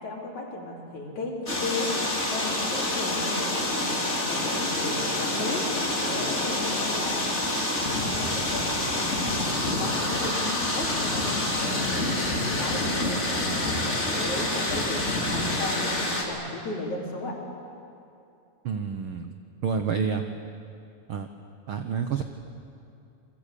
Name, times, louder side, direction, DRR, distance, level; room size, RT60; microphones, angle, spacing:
voice 1, 0.0-1.9 2.3-5.6 6.0-7.3 7.8-12.2 12.5-15.0 15.3-16.0 16.3-17.4, left 2 dB, 60° left, -1 dB, 5.2 m, -35 dB
sound 1, 1.5-16.2, left 1 dB, 20° left, 3.2 m, -27 dB
voice 2, 18.6-19.3 19.6-20.2 21.1-21.3 21.7-22.2, right 6 dB, 70° right, 7 dB, 1.3 m, -28 dB
29.0 x 23.0 x 8.4 m, 2.6 s
omnidirectional pair, 3.8 m